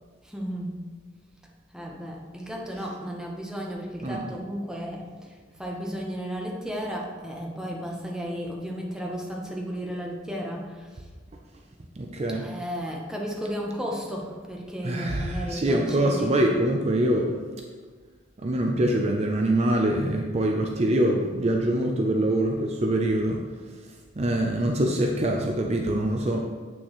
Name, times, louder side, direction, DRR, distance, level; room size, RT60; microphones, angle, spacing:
voice 1, 0.2-0.8 1.7-5.3 5.6-10.9 12.3-16.3, equal, 5° right, -2 dB, 0.9 m, -34 dB
voice 2, 12.0-12.5 14.8-17.3 18.4-23.4 23.7-23.9 24.2-26.4, right 1 dB, 35° right, 1 dB, 0.5 m, -24 dB
8.2 x 6.2 x 3.1 m, 1.5 s
head